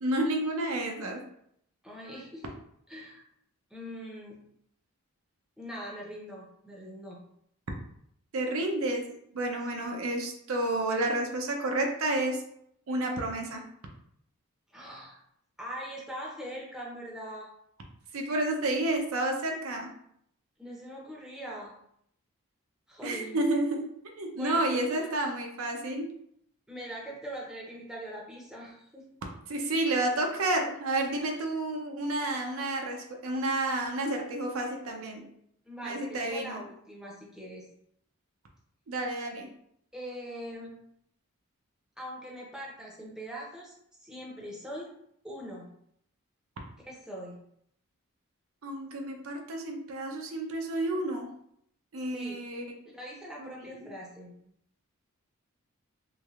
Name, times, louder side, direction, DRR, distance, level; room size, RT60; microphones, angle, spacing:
voice 1, 0.0-1.2 8.3-12.4 12.9-13.6 18.1-19.9 23.0-23.9 24.2-26.1 29.5-35.3 35.8-36.6 38.9-39.5 48.6-51.3 51.9-52.7 53.4-53.9, right 1 dB, 75° right, 2 dB, 0.6 m, -30 dB
voice 2, 1.8-2.4 2.9-3.2 3.7-4.4 5.6-7.2 9.8-10.1 14.7-15.2 15.6-17.5 20.6-21.7 22.9-23.4 24.3-25.3 26.7-29.1 31.0-31.4 35.7-37.6 39.9-40.8 42.0-43.7 44.0-44.9 45.2-45.7 46.8-47.4 52.1-52.4 52.9-54.3, equal, 5° right, -3 dB, 0.6 m, -42 dB
3.2 x 3.1 x 2.4 m, 0.71 s
head